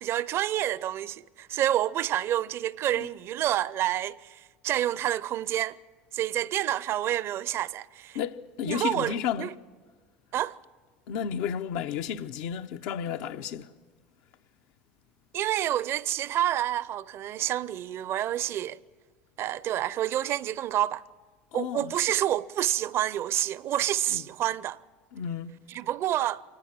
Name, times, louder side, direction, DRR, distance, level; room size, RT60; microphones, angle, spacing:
voice 1, 0.0-5.8 6.1-8.2 8.7-9.5 10.3-10.6 15.3-18.8 19.4-21.0 21.5-24.8 25.7-26.4, right 12 dB, 55° right, 0.6 m, -28 dB
voice 2, 8.1-9.5 11.1-13.7 21.5-22.1 24.1-24.2 25.1-25.6, left 8 dB, 75° left, 0.8 m, -32 dB
24.5 x 19.5 x 7.5 m
supercardioid pair, 90°, 5 cm